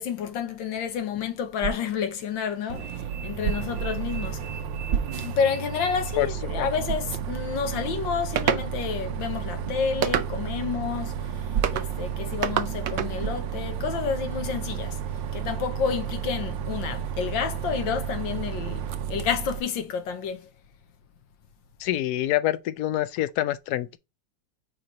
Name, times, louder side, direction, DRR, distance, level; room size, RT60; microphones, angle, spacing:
voice 1, 0.0-4.4 5.2-15.0 15.3-20.5, left 7 dB, 85° left, 1.7 m, -30 dB
sound 1, 1.6-2.1 3.4-3.9 4.9-5.5 6.0-6.1 6.8-7.2 9.6-9.9 11.5-12.0 13.2-13.5, right 8 dB, 35° right, 1.0 m, -30 dB
Bus, 2.7-19.6, right 8 dB, 80° right, 1.4 m, -32 dB
sound 2, 8.4-8.7 10.0-10.6 11.6-11.9 12.4-13.1, right 9 dB, 65° right, 0.8 m, -26 dB
voice 2, 21.8-24.0, left 14 dB, 70° left, 1.0 m, -26 dB
4.8 x 4.4 x 5.2 m
omnidirectional pair, 2.0 m